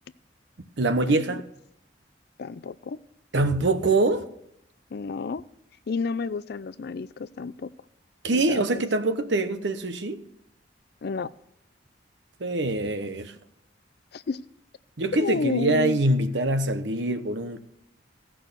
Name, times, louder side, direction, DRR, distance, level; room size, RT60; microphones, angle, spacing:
voice 1, 0.8-1.5 3.3-4.3 8.2-10.2 12.4-13.3 15.0-17.6, right 2 dB, 70° right, 0.9 m, -24 dB
voice 2, 2.4-3.0 4.9-5.4 5.9-7.7 8.3-8.6 11.0-11.3 14.1-14.4 15.1-16.0, left 4 dB, 60° left, 0.4 m, -30 dB
15.5 x 6.2 x 6.8 m
head